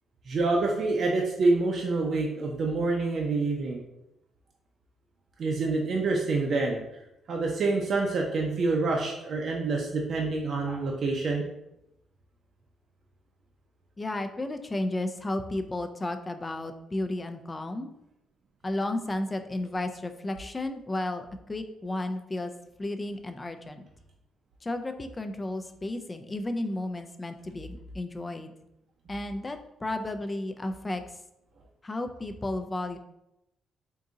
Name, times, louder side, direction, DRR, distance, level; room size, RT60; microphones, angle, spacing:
voice 1, 0.3-3.8 5.4-6.8 7.3-11.4, right 3 dB, 50° right, 0 dB, 0.5 m, -27 dB
voice 2, 14.0-17.9 18.6-22.5 22.8-23.9 24.6-28.5 29.1-31.2 31.8-33.0, left 1 dB, 20° left, 7 dB, 0.4 m, -33 dB
3.6 x 2.7 x 3.8 m, 0.87 s
cardioid pair, 105°, 0 cm